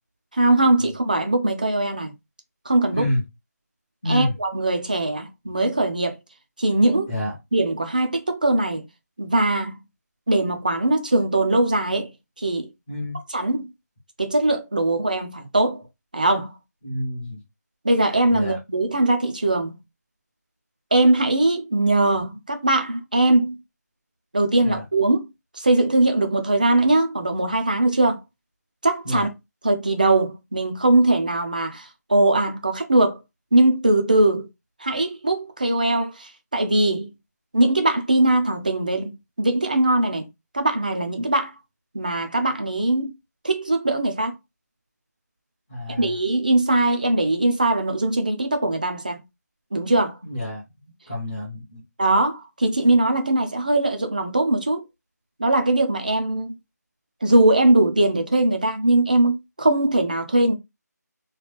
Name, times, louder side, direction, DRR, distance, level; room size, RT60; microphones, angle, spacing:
voice 1, 0.3-2.1 2.7-3.1 4.0-6.2 6.6-7.1 7.5-8.9 9.2-9.8 10.3-12.1 12.4-12.7 13.3-13.7 14.2-15.8 16.1-16.5 17.8-19.8 20.9-23.6 24.3-25.3 25.5-28.2 28.8-29.3 29.6-33.2 33.5-34.5 34.8-37.1 37.5-39.1 39.4-40.3 40.5-41.5 41.9-43.1 43.4-44.3 46.0-49.2 49.7-50.2 52.0-54.9 55.4-56.6 57.2-60.5, right 2 dB, 30° right, 0.4 m, -21 dB
voice 2, 4.0-4.3 7.1-7.3 12.9-13.2 16.8-17.4 18.3-18.6 24.6-24.8 29.0-29.3 45.7-46.1 50.2-50.6 51.1-51.8, left 1 dB, 15° left, 0.7 m, -28 dB
2.9 x 2.3 x 3.2 m
figure-of-eight pair, 175°, 10 cm